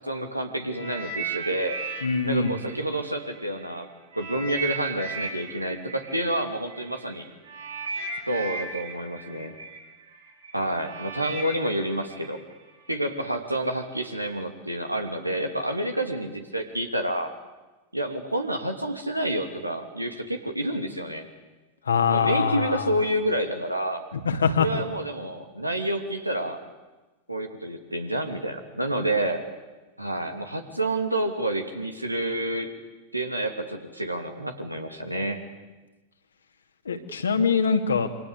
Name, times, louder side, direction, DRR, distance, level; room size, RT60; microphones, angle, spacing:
voice 1, 0.0-1.8 2.2-3.9 4.1-7.3 8.3-9.6 10.5-12.4 12.9-17.3 17.9-21.3 22.0-24.0 24.6-26.6 27.3-29.4 30.0-32.7 33.1-35.4, right 1 dB, 85° right, 5 dB, 2.9 m, -29 dB
sound 1, 0.7-3.6 4.1-13.1 13.8-14.0, right 4 dB, 70° right, 6.1 m, -36 dB
voice 2, 2.0-2.5 21.9-22.8 24.3-24.7 36.9-38.1, left 5 dB, 70° left, 5 dB, 2.6 m, -23 dB
27.5 x 25.5 x 8.5 m, 1.2 s
figure-of-eight pair, 90°, 0 cm